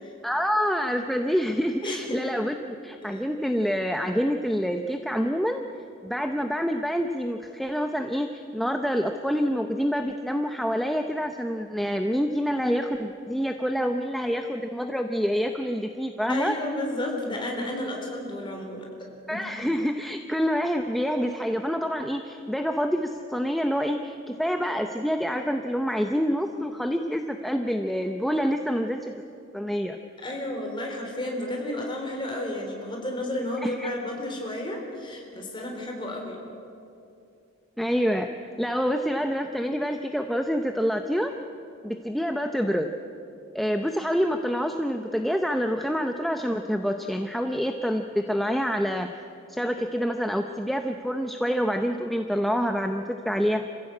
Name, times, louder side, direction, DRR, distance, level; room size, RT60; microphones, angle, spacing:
voice 1, 0.2-5.6 6.0-16.5 19.3-29.1 29.5-30.0 33.6-33.9 37.8-38.3 38.6-41.3 41.8-42.9 43.5-49.1 49.5-53.7, equal, ahead, 5 dB, 0.6 m, -27 dB
voice 2, 1.8-2.2 3.0-3.2 16.3-18.9 19.3-19.5 30.2-36.4, left 1 dB, 25° left, 1 dB, 3.7 m, -32 dB
27.0 x 15.5 x 8.5 m, 2.6 s
head